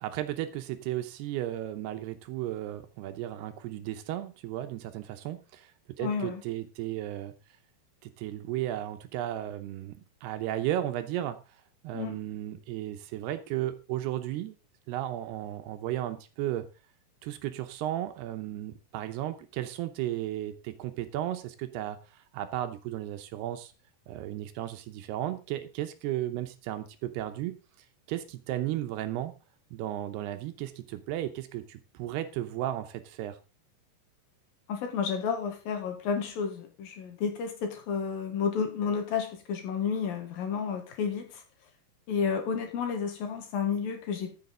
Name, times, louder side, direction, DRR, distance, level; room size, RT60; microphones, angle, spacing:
voice 1, 0.0-5.7 6.0-7.3 8.0-11.4 11.8-14.6 14.9-16.7 17.2-23.7 24.1-27.6 28.1-29.3 29.7-33.4, right 13 dB, 80° right, 9 dB, 2.8 m, -34 dB
voice 2, 6.0-6.4 11.9-12.2 34.7-41.4 42.1-44.3, left 6 dB, 65° left, 5 dB, 3.0 m, -31 dB
13.5 x 7.5 x 3.8 m, 0.32 s
omnidirectional pair, 4.9 m